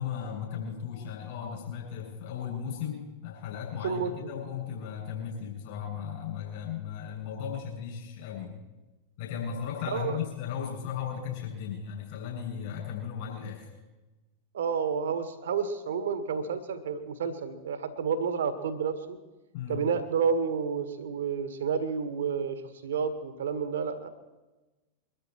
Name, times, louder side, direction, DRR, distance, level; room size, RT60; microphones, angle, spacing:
voice 1, 0.0-8.6 9.2-13.7 19.5-19.8, left 8 dB, 50° left, -3 dB, 7.3 m, -36 dB
voice 2, 3.8-4.3 9.9-10.2 14.5-19.2 19.7-24.1, right 6 dB, 65° right, 10 dB, 1.7 m, -30 dB
23.5 x 13.0 x 4.5 m, 1.1 s
figure-of-eight pair, 90°, 0 cm